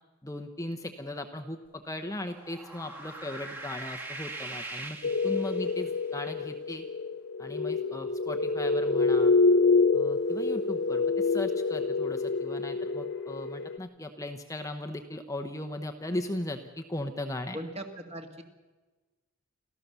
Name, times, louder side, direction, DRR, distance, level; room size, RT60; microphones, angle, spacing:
voice 1, 0.2-5.0 5.2-6.8 7.4-9.3 9.9-17.6, left 1 dB, 15° left, 5 dB, 0.8 m, -37 dB
sound 1, 2.2-6.0, right 2 dB, 10° right, 1.6 m, -41 dB
sound 2, 5.0-13.8, left 3 dB, 55° left, 0.6 m, -27 dB
voice 2, 17.5-18.4, right 1 dB, 30° right, 5 dB, 2.0 m, -39 dB
29.5 x 13.5 x 6.9 m, 1.3 s
head